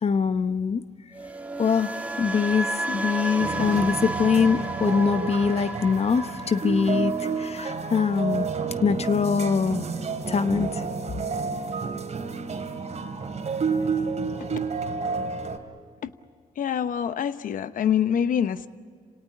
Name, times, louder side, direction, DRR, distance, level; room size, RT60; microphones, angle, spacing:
voice 1, 0.0-0.8 1.6-8.5 8.8-9.8 10.3-10.8, left 6 dB, 45° left, 12 dB, 0.9 m, -23 dB
sound 1, 1.1-9.2 9.5-9.9, right 2 dB, 10° right, 2.7 m, -33 dB
sound 2, 3.4-15.6, right 5 dB, 50° right, 2.8 m, -30 dB
voice 2, 16.6-18.7, left 8 dB, 70° left, 12 dB, 1.0 m, -25 dB
27.5 x 18.0 x 10.0 m, 2.1 s
cardioid pair, 65°, 14 cm